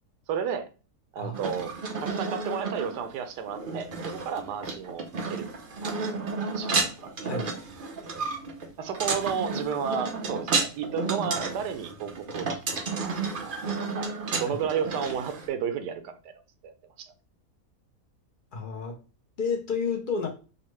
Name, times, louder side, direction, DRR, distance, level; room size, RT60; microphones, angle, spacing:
voice 1, 0.3-0.7 1.1-1.7 2.0-5.5 5.8-6.0 6.5-6.8 7.0-7.1 8.8-12.6 12.9-14.1 14.4-16.1 16.6-16.7 17.0-17.1, right 7 dB, 85° right, 9 dB, 1.2 m, -32 dB
sound 1, 1.3-15.5, right 4 dB, 55° right, 0.6 m, -32 dB
voice 2, 18.5-19.0 19.4-20.3, left 5 dB, 75° left, 2 dB, 0.4 m, -31 dB
5.4 x 2.1 x 3.1 m, 0.34 s
omnidirectional pair, 1.7 m